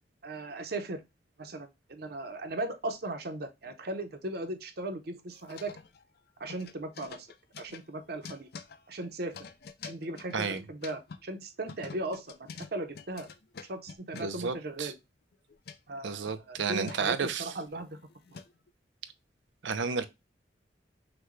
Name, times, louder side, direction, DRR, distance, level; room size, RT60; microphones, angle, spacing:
voice 1, 0.2-1.0 1.4-5.7 6.4-7.3 7.6-8.5 8.9-9.3 9.8-13.3 13.6-14.9 15.9-18.0, right 2 dB, 60° right, 0.8 m, -37 dB
sound 1, 5.3-6.2 6.5-11.2 11.7-14.5 15.3-15.8 16.3-18.7, left 5 dB, 60° left, 0.5 m, -47 dB
voice 2, 10.3-10.6 14.1-14.9 16.0-17.6 19.6-20.1, right 5 dB, 85° right, 0.6 m, -32 dB
5.9 x 2.3 x 3.1 m
head